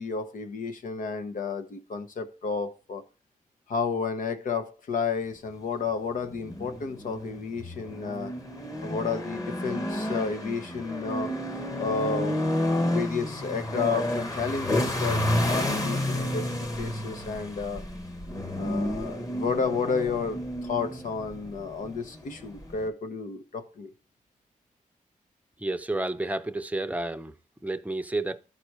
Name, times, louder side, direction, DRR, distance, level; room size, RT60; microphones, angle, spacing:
voice 1, 0.0-3.0 3.7-8.3 8.8-11.4 11.8-16.5 16.8-17.8 18.6-23.9, left 5 dB, 70° left, 0.9 m, -31 dB
sound 1, 6.2-22.9, left 1 dB, 25° left, 1.3 m, -31 dB
voice 2, 25.6-27.3 27.6-28.4, right 2 dB, 10° right, 0.6 m, -30 dB
12.5 x 4.2 x 4.7 m
cardioid pair, 90°, 14 cm